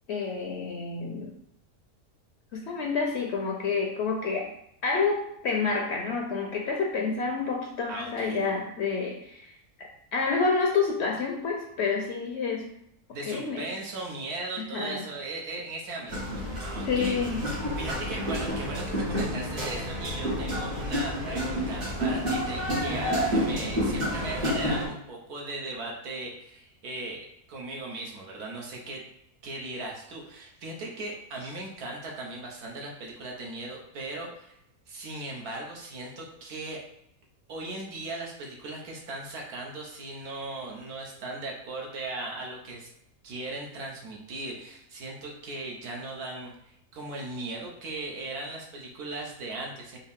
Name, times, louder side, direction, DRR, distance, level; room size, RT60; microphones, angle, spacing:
voice 1, 0.1-1.3 2.5-4.5 4.8-12.7 13.2-13.6 14.6-15.0 16.9-17.5, left 4 dB, 65° left, 0 dB, 0.7 m, -29 dB
voice 2, 7.9-8.5 13.1-17.2 17.8-29.0 29.4-34.6 34.9-36.8 37.5-42.9 43.2-50.0, right 2 dB, 85° right, -2 dB, 1.5 m, -38 dB
sound 1, 16.1-24.9, equal, 65° right, 2.2 m, -29 dB
4.6 x 2.7 x 3.5 m, 0.76 s
omnidirectional pair, 1.6 m